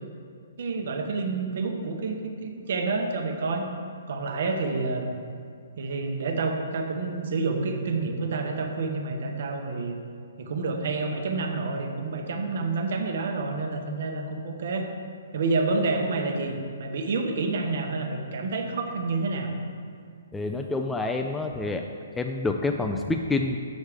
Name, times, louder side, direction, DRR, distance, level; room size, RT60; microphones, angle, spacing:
voice 1, 0.6-3.7 4.1-5.1 5.8-9.9 10.4-14.9 15.3-19.5, right 3 dB, 60° right, 4 dB, 1.0 m, -28 dB
voice 2, 20.3-21.8 22.2-23.6, left 3 dB, 5° left, 3 dB, 0.3 m, -27 dB
7.1 x 6.4 x 4.9 m, 2.2 s
hypercardioid pair, 150°, 0 cm